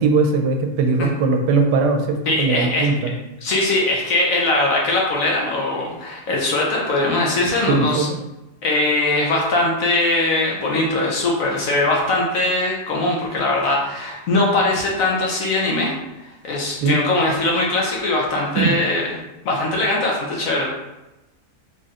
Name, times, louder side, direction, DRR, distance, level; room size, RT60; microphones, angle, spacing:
voice 1, 0.0-3.1 7.7-8.2 16.8-17.0 18.6-18.7, right 4 dB, 90° right, 4 dB, 1.2 m, -19 dB
voice 2, 2.3-2.9 3.4-8.1 8.6-15.9 16.4-19.2 19.4-20.7, left 2 dB, 60° left, -2 dB, 1.0 m, -21 dB
3.7 x 2.4 x 4.1 m, 0.97 s
omnidirectional pair, 1.7 m